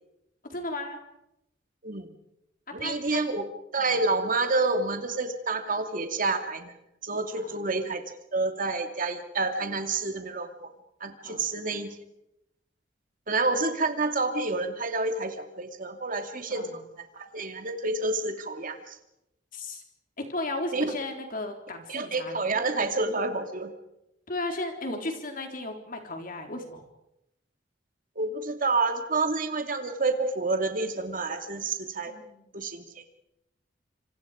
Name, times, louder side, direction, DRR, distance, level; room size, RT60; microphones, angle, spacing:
voice 1, 0.5-1.0 2.8-3.3 3.8-3.9 7.4-7.5 11.2-11.5 16.5-16.8 19.5-19.8 20.2-22.4 24.3-26.9 32.1-32.5, left 2 dB, 50° left, 4 dB, 3.8 m, -35 dB
voice 2, 1.8-2.1 2.7-3.4 3.7-6.7 7.0-8.0 8.3-10.7 11.0-11.9 13.3-16.7 17.1-19.0 20.7-20.8 21.9-23.7 28.2-32.1 32.5-32.8, right 3 dB, 45° right, 6 dB, 2.6 m, -28 dB
27.0 x 26.5 x 5.1 m, 0.87 s
head